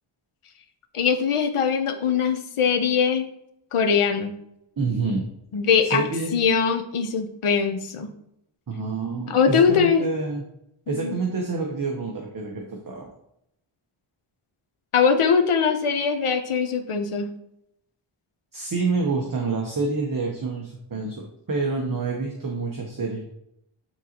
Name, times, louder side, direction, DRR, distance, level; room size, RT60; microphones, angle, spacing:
voice 1, 0.9-3.2 3.7-4.3 5.5-6.0 6.3-8.1 9.3-10.1 10.9-11.2 14.9-17.3, left 6 dB, 90° left, 6 dB, 0.8 m, -21 dB
voice 2, 4.8-5.3 5.8-6.3 8.7-10.4 10.9-13.1 18.5-23.3, right 3 dB, 40° right, 0 dB, 0.9 m, -27 dB
9.0 x 3.9 x 2.9 m, 0.77 s
wide cardioid pair, 110°, 49 cm